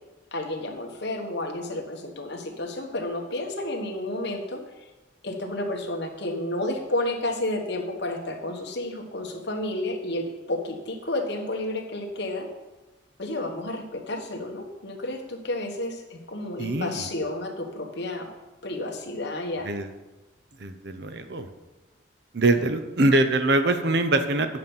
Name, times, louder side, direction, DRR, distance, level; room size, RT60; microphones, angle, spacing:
voice 1, 0.3-4.9 5.2-12.5 13.2-18.3 18.6-19.7, left 1 dB, 55° left, 3 dB, 1.3 m, -31 dB
voice 2, 16.6-17.1 19.6-19.9 20.6-21.5 22.3-24.6, right 2 dB, 55° right, 8 dB, 0.7 m, -23 dB
9.5 x 7.1 x 5.5 m, 1.1 s
head